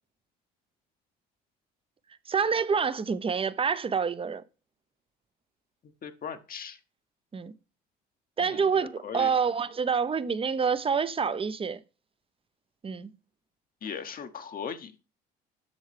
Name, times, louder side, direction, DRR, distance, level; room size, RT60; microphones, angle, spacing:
voice 1, 2.3-4.4 7.3-7.5 8.4-11.8 12.8-13.1, right 6 dB, 25° right, 0.6 m, -27 dB
voice 2, 6.0-6.8 8.4-9.3 13.8-15.0, left 7 dB, 45° left, 0.9 m, -39 dB
8.1 x 6.3 x 3.3 m
hypercardioid pair, 65°, 21 cm